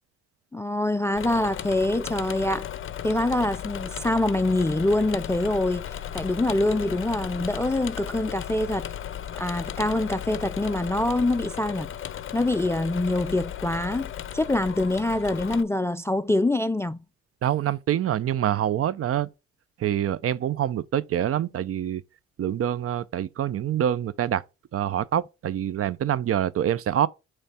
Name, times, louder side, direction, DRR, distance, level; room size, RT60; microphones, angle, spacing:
voice 1, 0.5-2.7 3.0-5.9 6.1-8.9 9.4-11.9 12.3-17.0, left 2 dB, 10° left, 0.3 m, -25 dB
Engine / Mechanisms, 1.1-15.6, left 10 dB, 45° left, 0.7 m, -35 dB
voice 2, 17.4-19.3 19.8-22.0 22.4-24.4 24.7-27.1, right 10 dB, 50° right, 0.6 m, -25 dB
8.7 x 3.3 x 4.3 m
supercardioid pair, 75°, 30 cm